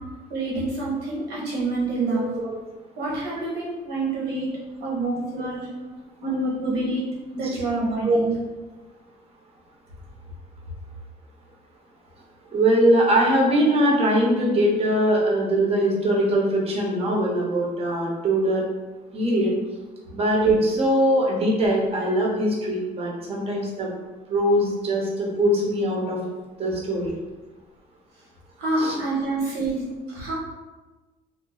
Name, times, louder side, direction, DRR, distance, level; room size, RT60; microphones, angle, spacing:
voice 1, 0.3-2.3 3.0-4.5 4.8-5.7 6.2-7.1 7.3-8.3 28.6-30.3, right 2 dB, 80° right, -5 dB, 1.3 m, -27 dB
voice 2, 2.1-2.6 8.0-8.2 12.5-18.6 19.1-19.5 20.1-23.9 24.3-26.2 26.6-27.1 28.8-29.0, right 1 dB, 35° right, -2 dB, 0.8 m, -21 dB
3.0 x 2.3 x 3.8 m, 1.2 s
cardioid pair, 110°, 17 cm